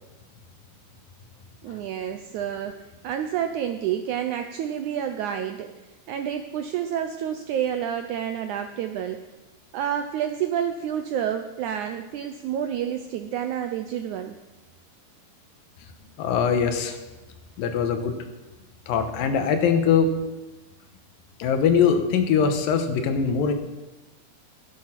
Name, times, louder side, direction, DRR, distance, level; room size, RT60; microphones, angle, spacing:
voice 1, 1.6-5.7 6.1-9.3 9.7-14.4, right 9 dB, 85° right, 7 dB, 1.7 m, -29 dB
voice 2, 16.2-17.0 17.6-18.2 18.9-20.1 21.4-23.5, left 6 dB, 75° left, 7 dB, 2.7 m, -22 dB
16.0 x 8.8 x 5.9 m, 1.1 s
omnidirectional pair, 4.2 m